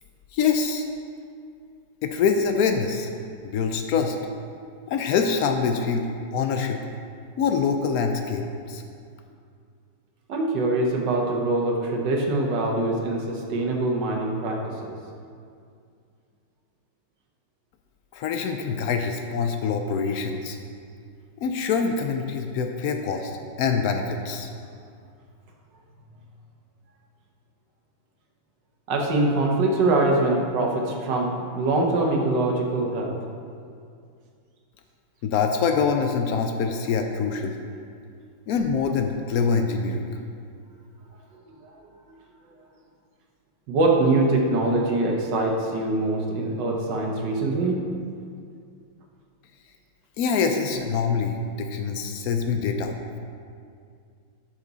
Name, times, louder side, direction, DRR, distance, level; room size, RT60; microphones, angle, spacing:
voice 1, 0.3-0.9 2.0-3.1 3.4-4.2 4.9-6.8 7.4-8.8 18.1-20.6 21.4-24.5 35.2-37.6 38.5-40.1 50.2-52.9, left 5 dB, 90° left, 5 dB, 0.8 m, -25 dB
voice 2, 10.3-15.0 28.9-33.2 41.6-41.7 43.7-47.8, right 2 dB, 65° right, 0 dB, 1.7 m, -23 dB
11.5 x 6.0 x 4.0 m, 2.3 s
omnidirectional pair, 2.2 m